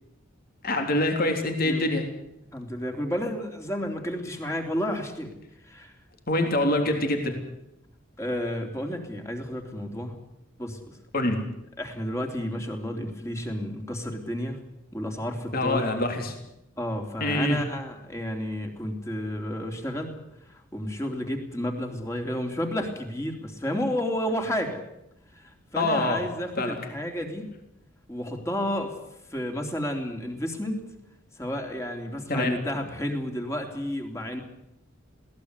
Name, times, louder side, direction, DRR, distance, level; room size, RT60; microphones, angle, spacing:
voice 1, 0.6-2.0 6.3-7.3 11.1-11.4 15.5-16.3 17.2-17.6 25.8-26.2 26.6-26.8 32.3-32.6, left 1 dB, 45° left, 4 dB, 3.5 m, -25 dB
voice 2, 2.5-5.3 5.6-5.9 8.2-10.2 10.6-11.0 11.8-14.6 14.9-15.9 16.8-20.2 20.4-24.8 25.3-27.5 28.1-28.9 29.3-30.8 31.3-34.4, equal, 15° left, 4 dB, 3.4 m, -31 dB
21.5 x 18.0 x 8.2 m, 0.85 s
head